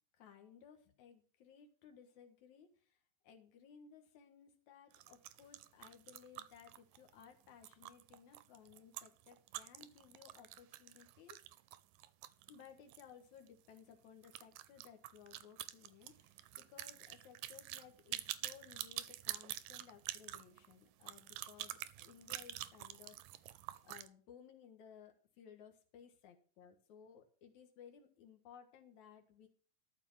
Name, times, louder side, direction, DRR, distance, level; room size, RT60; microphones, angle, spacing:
voice 1, 0.2-11.4 12.5-23.5 23.8-29.5, left 8 dB, 65° left, 4 dB, 2.8 m, -60 dB
sound 1, 4.9-13.1 13.4-13.5 13.8-13.9 14.2-24.1, right 15 dB, 90° right, 2.3 m, -47 dB
13.5 x 5.0 x 7.2 m, 0.41 s
omnidirectional pair, 3.7 m